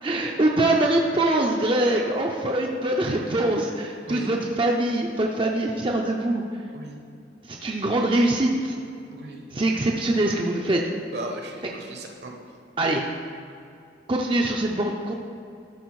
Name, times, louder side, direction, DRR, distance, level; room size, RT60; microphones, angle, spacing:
voice 1, 0.0-6.4 7.4-8.7 9.5-10.8 12.8-13.0 14.1-15.1, right 1 dB, 30° right, 0 dB, 0.5 m, -23 dB
voice 2, 4.1-4.4 6.7-7.0 9.1-9.4 11.1-12.3, right 1 dB, 65° right, 2 dB, 1.1 m, -36 dB
12.5 x 4.4 x 4.7 m, 2.5 s
head